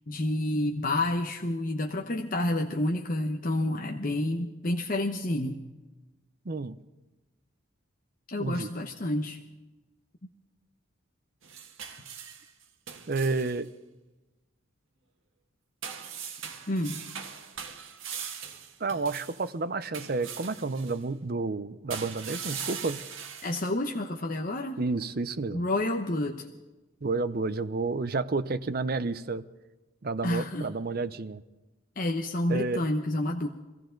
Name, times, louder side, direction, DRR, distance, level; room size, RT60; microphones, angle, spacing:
voice 1, 0.1-5.6 8.3-9.4 16.7-17.0 23.4-24.8 25.5-26.5 30.2-30.7 32.0-33.5, left 1 dB, 40° left, 2 dB, 0.9 m, -29 dB
voice 2, 6.5-6.8 8.4-8.7 13.1-13.7 18.8-23.0 24.8-25.6 27.0-29.4 30.0-31.4 32.5-32.8, right 3 dB, 45° right, 13 dB, 0.6 m, -30 dB
sound 1, 11.4-13.6 15.8-19.5 19.9-21.0 21.9-23.7, right 7 dB, 75° right, 1.5 m, -40 dB
24.5 x 15.0 x 3.9 m, 1.1 s
head